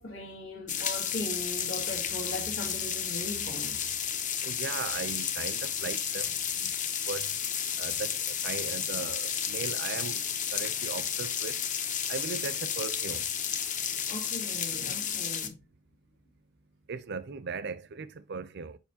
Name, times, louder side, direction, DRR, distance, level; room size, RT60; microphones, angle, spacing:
voice 1, 0.0-3.8 14.1-15.6, left 1 dB, 90° left, 2.0 m, -39 dB
sound 1, 0.7-15.5, left 8 dB, 40° left, 0.8 m, -32 dB
voice 2, 4.4-6.7 7.1-7.3 7.8-8.1 8.4-10.2 10.5-11.6 12.1-13.2 16.9-18.8, right 5 dB, 55° right, 0.6 m, -38 dB
7.2 x 5.2 x 2.8 m
head